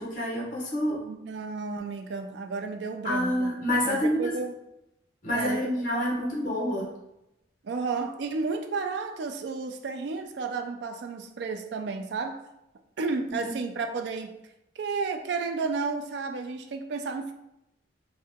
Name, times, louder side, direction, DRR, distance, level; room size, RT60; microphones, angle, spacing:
voice 1, 0.0-1.0 3.0-4.3 5.2-6.9, left 1 dB, 45° left, -3 dB, 0.8 m, -27 dB
voice 2, 1.0-3.5 3.8-4.6 5.3-6.1 6.4-6.6 7.6-12.4 13.0-14.3 14.8-17.3, right 4 dB, 60° right, 5 dB, 0.3 m, -32 dB
2.8 x 2.2 x 3.5 m, 0.85 s
head